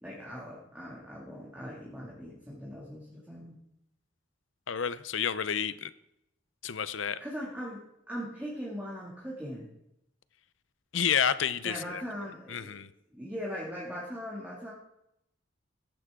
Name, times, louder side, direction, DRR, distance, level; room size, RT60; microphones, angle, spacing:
voice 1, 0.0-3.6 6.9-9.7 11.6-12.8 13.1-14.7, equal, 10° right, -5 dB, 2.5 m, -40 dB
voice 2, 4.7-5.9 6.6-7.2 10.9-12.0 12.5-12.9, left 7 dB, 80° left, 15 dB, 0.7 m, -30 dB
15.0 x 14.5 x 3.8 m, 0.81 s
head